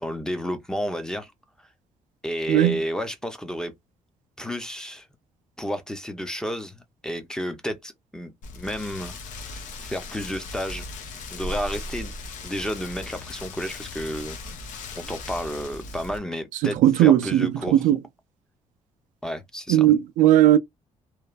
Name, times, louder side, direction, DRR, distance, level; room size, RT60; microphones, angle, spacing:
voice 1, 0.0-1.3 2.2-3.7 4.4-5.1 5.6-9.2 9.5-10.9 11.3-12.1 12.4-14.4 14.9-17.9 19.2-19.9, equal, 5° left, 0.6 m, -31 dB
voice 2, 2.5-2.8 16.8-18.0 19.7-20.6, right 12 dB, 90° right, 0.4 m, -17 dB
Rain, 8.4-16.2, left 2 dB, 80° left, 0.8 m, -38 dB
3.0 x 2.4 x 2.3 m
cardioid pair, 135°, 13 cm